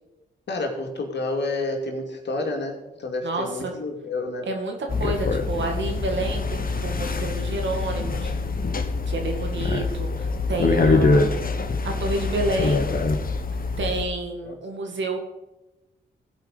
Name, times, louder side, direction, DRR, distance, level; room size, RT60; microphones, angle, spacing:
voice 1, 0.5-4.5 14.4-14.6, left 2 dB, 65° left, 2 dB, 2.4 m, -29 dB
voice 2, 3.2-3.7 4.5-8.3 9.1-11.4 11.8-13.0 13.8-15.2, right 2 dB, 75° right, 3 dB, 2.2 m, -29 dB
sound 1, 4.9-14.0, left 3 dB, 50° left, 1.2 m, -24 dB
15.5 x 5.2 x 5.3 m, 1.0 s
supercardioid pair, 40°, 19 cm